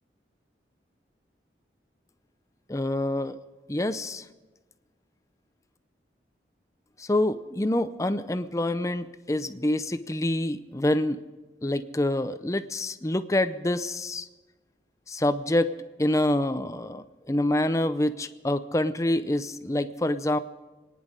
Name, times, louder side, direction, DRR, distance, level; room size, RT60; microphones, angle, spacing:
voice 1, 2.7-3.4 3.7-4.2 7.0-11.2 11.6-14.3 15.1-15.7 16.0-20.4, left 1 dB, 15° left, 11 dB, 0.6 m, -26 dB
27.0 x 10.5 x 5.1 m, 1.2 s
head